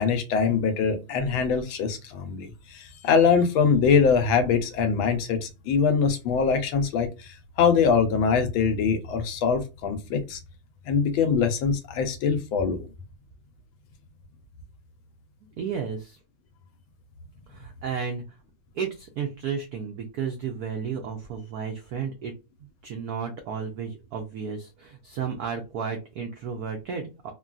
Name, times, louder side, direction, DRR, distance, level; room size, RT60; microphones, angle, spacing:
voice 1, 0.0-10.4 10.9-12.9, left 6 dB, 80° left, 1.4 m, -23 dB
voice 2, 15.6-16.2 17.5-18.2 18.7-22.3 22.6-27.3, right 6 dB, 90° right, 0.8 m, -33 dB
3.8 x 2.2 x 2.3 m
omnidirectional pair, 2.3 m